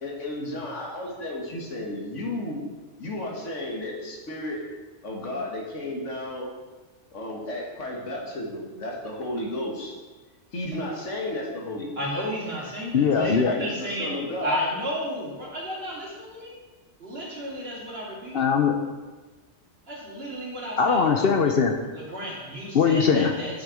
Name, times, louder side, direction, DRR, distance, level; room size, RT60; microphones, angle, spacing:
voice 1, 0.0-2.6 3.0-4.6 5.0-6.5 7.1-9.9 10.5-11.9 13.2-14.6, left 1 dB, 80° left, -1 dB, 2.0 m, -33 dB
voice 2, 12.0-14.1 14.4-16.5 17.0-18.4 19.9-21.0 21.9-23.6, equal, 55° right, -5 dB, 2.8 m, -33 dB
voice 3, 12.9-13.5 18.3-18.7 20.8-21.8 22.7-23.3, left 6 dB, 60° left, 4 dB, 0.8 m, -20 dB
8.6 x 6.6 x 4.9 m, 1.3 s
omnidirectional pair, 1.2 m